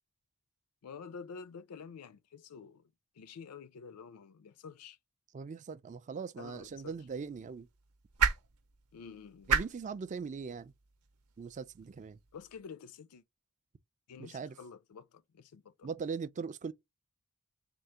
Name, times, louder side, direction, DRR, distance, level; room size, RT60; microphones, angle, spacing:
voice 1, 0.8-2.9 3.2-5.0 6.4-7.0 8.9-9.5 12.3-13.2 14.1-15.9, left 6 dB, 80° left, 0.4 m, -49 dB
voice 2, 5.3-7.7 9.5-10.7 11.4-12.2 14.2-14.6 15.8-16.7, right 5 dB, 35° right, 0.3 m, -40 dB
sound 1, 6.4-12.6, right 7 dB, 80° right, 0.7 m, -37 dB
3.7 x 2.4 x 4.5 m
head